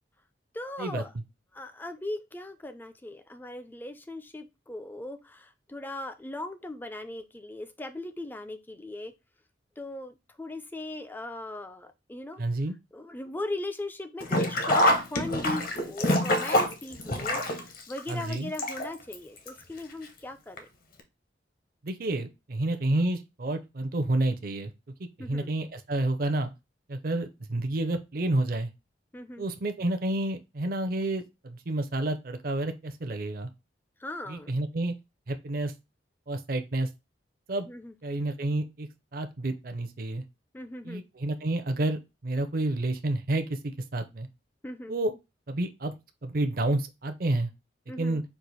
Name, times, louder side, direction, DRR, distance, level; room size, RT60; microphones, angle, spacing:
voice 1, 0.5-1.1 1.5-9.1 9.8-12.4 12.9-17.4 17.9-20.7 25.2-25.5 29.1-29.4 34.0-34.5 37.7-37.9 40.5-41.0 44.6-45.0 47.9-48.2, left 2 dB, 10° left, 9 dB, 0.4 m, -38 dB
voice 2, 12.4-12.7 18.1-18.5 21.8-24.7 25.2-26.5 26.9-28.7 29.4-33.5 34.3-34.9 35.3-35.7 36.3-36.9 37.5-37.7 38.0-40.2 40.8-44.3 44.9-45.1 45.5-46.0 46.2-47.5 48.0-48.2, right 2 dB, 50° right, 8 dB, 0.6 m, -29 dB
Sink (filling or washing), 14.2-19.1 19.5-19.6 20.6-20.7 21.0-21.1, left 1 dB, 50° left, 0.8 m, -26 dB
4.6 x 2.5 x 4.0 m, 0.24 s
head